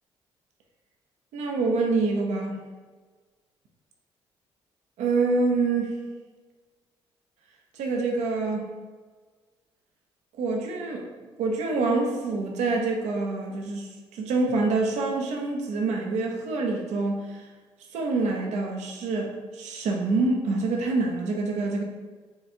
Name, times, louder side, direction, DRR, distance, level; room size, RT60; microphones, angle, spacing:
voice 1, 1.3-2.6 5.0-6.0 7.7-8.7 10.4-11.1 11.4-17.4 17.9-21.8, right 3 dB, 70° right, 1 dB, 0.5 m, -26 dB
4.4 x 2.4 x 2.7 m, 1.4 s
hypercardioid pair, 50°, 12 cm